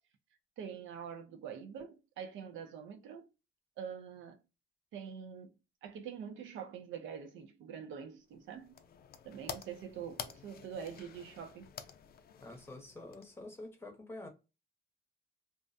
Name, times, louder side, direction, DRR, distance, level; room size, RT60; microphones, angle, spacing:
voice 1, 0.6-3.3 3.8-4.4 4.9-5.5 5.8-8.8 9.2-11.7, right 7 dB, 75° right, 0.5 m, -45 dB
sound 1, 8.3-13.7, left 8 dB, 50° left, 0.4 m, -49 dB
voice 2, 12.4-14.3, left 2 dB, 10° left, 0.8 m, -47 dB
2.4 x 2.0 x 2.5 m
cardioid pair, 90°, 20 cm